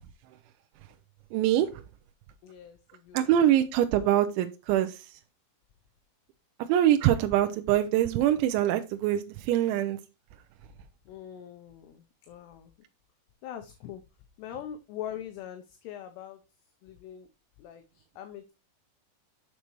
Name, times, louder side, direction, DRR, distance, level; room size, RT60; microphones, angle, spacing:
voice 1, 1.3-1.8 3.1-4.9 6.7-10.0, right 12 dB, 85° right, 8 dB, 2.9 m, -24 dB
voice 2, 2.4-3.3 11.1-12.7 13.4-14.0 14.4-16.4 16.8-17.3 17.6-18.5, left 10 dB, 80° left, 7 dB, 2.6 m, -42 dB
7.5 x 6.7 x 3.0 m, 0.27 s
omnidirectional pair, 5.3 m